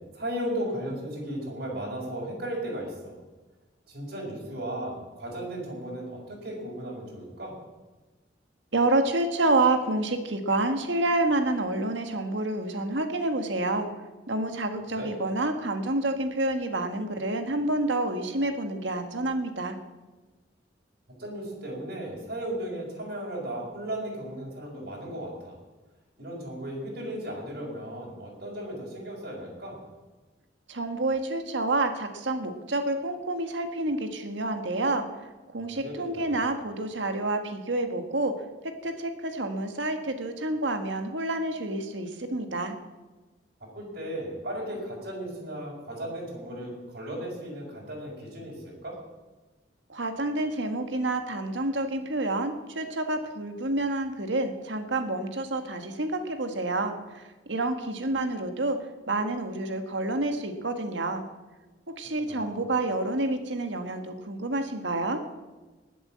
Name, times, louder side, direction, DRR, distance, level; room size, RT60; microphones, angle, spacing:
voice 1, 0.1-3.1 3.9-7.6 14.9-15.1 21.2-25.6 26.2-29.8 35.8-36.4 43.7-49.0 62.2-62.6, right 1 dB, 55° right, -3 dB, 5.4 m, -36 dB
voice 2, 8.7-13.9 14.3-19.8 30.7-35.0 35.5-38.3 38.6-42.7 49.9-58.8 59.1-61.2 61.9-65.2, right 2 dB, 80° right, 6 dB, 1.7 m, -28 dB
19.5 x 8.0 x 7.6 m, 1.2 s
head